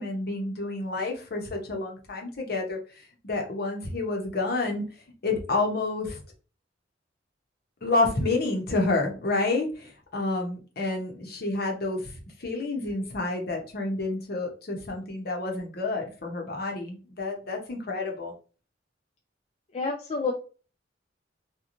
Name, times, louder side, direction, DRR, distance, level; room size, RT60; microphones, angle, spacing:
voice 1, 0.0-4.8 5.2-6.2 7.8-18.3, left 2 dB, 55° left, 1 dB, 0.8 m, -29 dB
voice 2, 19.7-20.3, left 3 dB, 35° left, 1 dB, 0.3 m, -28 dB
2.9 x 2.2 x 2.5 m, 0.37 s
head